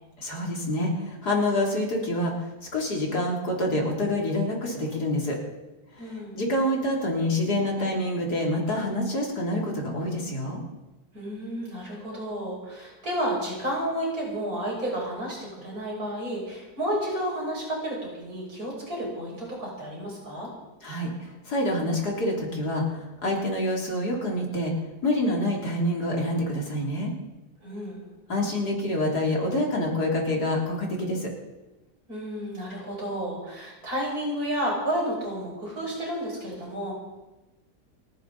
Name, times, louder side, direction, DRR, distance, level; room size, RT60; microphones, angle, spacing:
voice 1, 0.2-5.4 6.0-10.6 20.8-24.7 25.0-27.1 28.3-31.3, left 1 dB, 70° left, -1 dB, 3.8 m, -27 dB
voice 2, 6.0-6.4 11.1-20.5 27.6-28.0 32.1-36.9, equal, 60° right, -4 dB, 6.6 m, -31 dB
29.5 x 10.5 x 4.1 m, 1.1 s
omnidirectional pair, 1.8 m